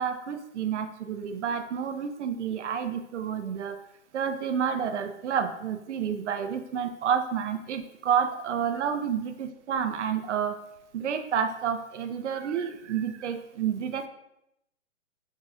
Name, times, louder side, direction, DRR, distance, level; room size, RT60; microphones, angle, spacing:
voice 1, 0.0-3.8 4.1-10.6 10.9-14.1, right 7 dB, 65° right, 8 dB, 0.5 m, -29 dB
6.0 x 2.7 x 2.3 m, 0.82 s
hypercardioid pair, 165°, 39 cm